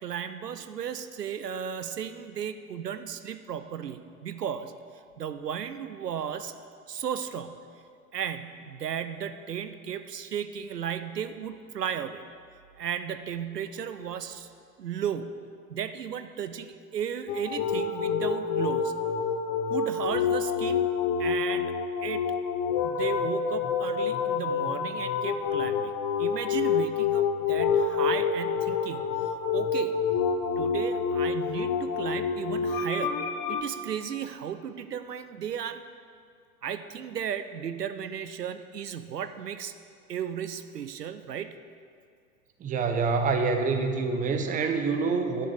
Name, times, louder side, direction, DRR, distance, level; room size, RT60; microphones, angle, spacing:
voice 1, 0.0-4.7 5.2-6.5 6.9-7.6 8.1-12.2 12.8-14.5 14.8-15.4 15.7-18.9 19.7-20.8 21.2-21.7 22.0-22.2 22.8-25.9 26.2-30.0 30.6-33.2 33.5-35.8 36.6-39.7 40.1-41.5, right 8 dB, 75° right, 10 dB, 0.7 m, -35 dB
sound 1, 17.3-33.6, left 6 dB, 35° left, 0.9 m, -28 dB
voice 2, 42.6-45.5, right 4 dB, 15° right, 5 dB, 0.9 m, -26 dB
10.5 x 7.0 x 8.2 m, 2.2 s
figure-of-eight pair, 95°, 48 cm